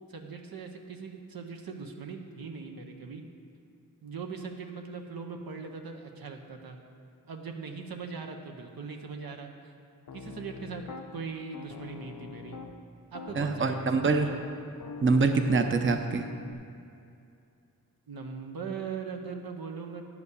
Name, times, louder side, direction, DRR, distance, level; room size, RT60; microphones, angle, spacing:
voice 1, 0.1-3.2 4.0-6.8 7.3-9.7 10.1-10.8 11.1-12.6 13.1-14.4 18.1-20.1, right 5 dB, 80° right, 3 dB, 0.8 m, -40 dB
Piano, 10.1-11.1 11.5-12.8 13.1-16.5, left 4 dB, 70° left, 0.6 m, -43 dB
voice 2, 13.3-14.3 15.0-16.2, right 4 dB, 35° right, 6 dB, 0.6 m, -25 dB
9.7 x 5.0 x 6.6 m, 2.5 s
cardioid pair, 55°, 36 cm